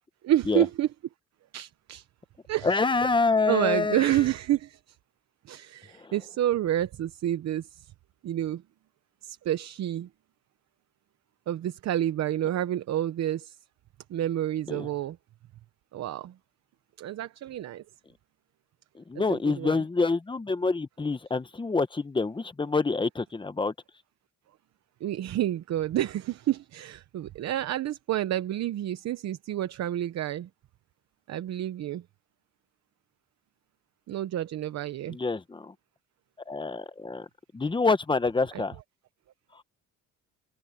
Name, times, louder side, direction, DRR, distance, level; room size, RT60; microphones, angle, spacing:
voice 1, 0.2-0.9 1.5-2.1 2.5-2.9 3.5-5.0 5.5-7.9 8.2-8.6 9.2-10.1 11.5-13.6 14.1-15.2 15.9-16.3 17.0-17.8 19.1-19.8 25.0-30.5 31.3-32.0 34.1-35.2 38.5-38.6, right 12 dB, 55° right, 0.9 m, -29 dB
voice 2, 2.6-4.1 6.0-6.1 14.7-14.9 19.1-23.7 35.1-35.7 36.5-37.2 37.5-38.8, left 3 dB, 15° left, 1.2 m, -26 dB
cardioid pair, 105°, 32 cm